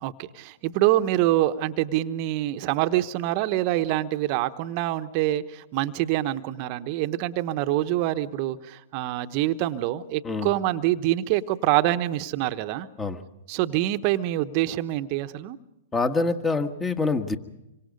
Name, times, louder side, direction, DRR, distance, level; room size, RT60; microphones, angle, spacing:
voice 1, 0.0-12.9 13.5-15.6, right 14 dB, 45° right, 10 dB, 1.0 m, -25 dB
voice 2, 15.9-17.4, left 3 dB, 15° left, 8 dB, 1.6 m, -25 dB
27.0 x 24.5 x 5.3 m, 0.91 s
hypercardioid pair, 115°, 0 cm